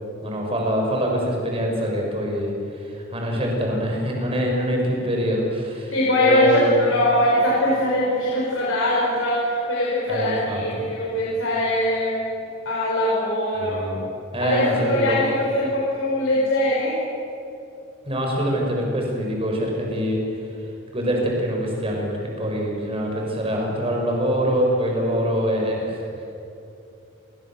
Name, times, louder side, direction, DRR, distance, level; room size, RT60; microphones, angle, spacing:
voice 1, 0.2-6.8 10.1-10.9 13.5-14.0 14.3-15.2 18.0-20.2 20.9-26.2, equal, 30° right, 0 dB, 6.3 m, -24 dB
voice 2, 5.9-12.4 12.7-13.8 14.4-17.0, left 1 dB, 70° left, -5 dB, 5.7 m, -22 dB
29.5 x 23.0 x 7.6 m, 2.8 s
head